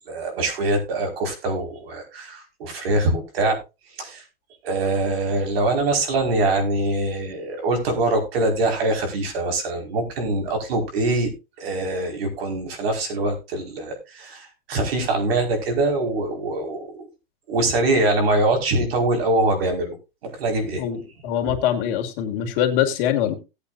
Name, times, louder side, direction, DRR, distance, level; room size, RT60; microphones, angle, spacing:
voice 1, 0.1-3.6 4.0-4.2 4.6-11.3 11.6-17.1 17.5-20.0 20.2-20.8 21.4-21.5, right 2 dB, 75° right, 4 dB, 5.3 m, -23 dB
voice 2, 20.8-23.3, left 10 dB, 50° left, 6 dB, 2.2 m, -23 dB
18.0 x 8.6 x 2.6 m, 0.27 s
supercardioid pair, 140°, 30 cm